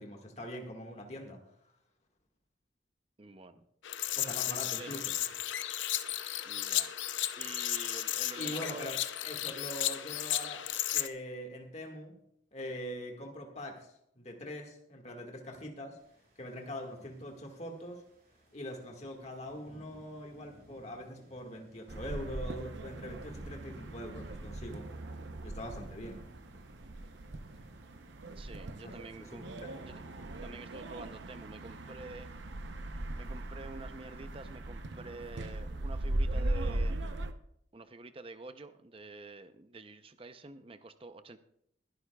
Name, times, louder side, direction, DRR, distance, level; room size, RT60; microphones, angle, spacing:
voice 1, 0.0-1.4 4.2-5.1 8.4-12.2 12.5-16.0 16.4-18.0 18.5-24.9 25.4-26.2 28.8-28.9 29.2-29.7, equal, 35° left, 2 dB, 1.8 m, -43 dB
voice 2, 3.2-3.6 4.8-5.0 6.5-6.9 7.4-8.9 28.4-30.0 30.4-32.3 33.1-37.0 37.7-41.4, right 3 dB, 30° right, 10 dB, 0.6 m, -48 dB
sound 1, 3.8-11.1, left 12 dB, 75° left, 0.6 m, -34 dB
sound 2, 16.0-34.6, equal, 50° right, 4.2 m, -62 dB
sound 3, 21.9-37.3, right 1 dB, 70° right, 0.8 m, -39 dB
21.5 x 11.5 x 2.3 m, 0.72 s
head